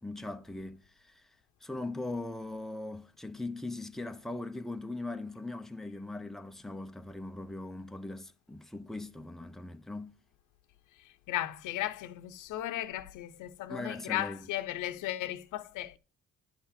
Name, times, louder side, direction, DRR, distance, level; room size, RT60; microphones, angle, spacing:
voice 1, 0.0-1.3 1.6-10.2 13.7-14.5, left 2 dB, ahead, 0.7 m, -40 dB
voice 2, 11.3-16.0, left 13 dB, 85° left, 0.8 m, -36 dB
10.5 x 5.7 x 4.2 m
cardioid pair, 90°, 30 cm